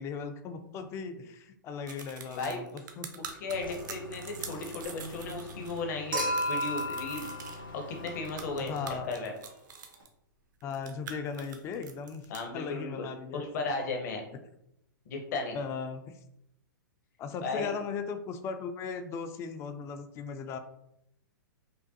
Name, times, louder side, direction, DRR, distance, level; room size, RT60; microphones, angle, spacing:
voice 1, 0.0-2.7 3.0-3.2 8.6-9.1 10.6-13.5 15.5-16.2 17.2-20.6, left 6 dB, 25° left, 9 dB, 0.4 m, -37 dB
sound 1, 1.9-5.8 6.1-7.6 8.1-10.1 10.6-12.4, right 7 dB, 65° right, 0.7 m, -45 dB
voice 2, 2.3-2.8 3.2-7.3 7.7-8.8 9.1-9.3 12.3-13.1 13.3-14.2 15.1-15.6 17.4-17.7, left 3 dB, 55° left, 3 dB, 0.8 m, -35 dB
sound 2, 3.5-9.0, left 2 dB, 90° left, 0.6 m, -46 dB
Human group actions / Chink clink / Liquid, 6.1-8.5 10.0-10.1, equal, 90° right, 1.4 m, -33 dB
5.2 x 2.1 x 2.7 m, 0.80 s
hypercardioid pair, 115°, 11 cm